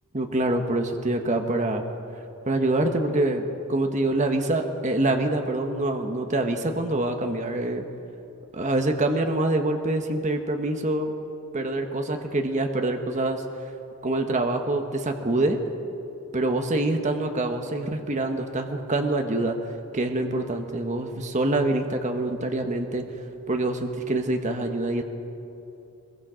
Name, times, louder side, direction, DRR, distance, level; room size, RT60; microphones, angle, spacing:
voice 1, 0.1-1.8 2.4-7.8 8.5-11.1 11.5-13.4 14.0-15.6 16.3-19.6 19.9-23.0 23.5-25.0, right 2 dB, 35° right, 4 dB, 1.3 m, -25 dB
23.5 x 22.5 x 5.1 m, 2.8 s
head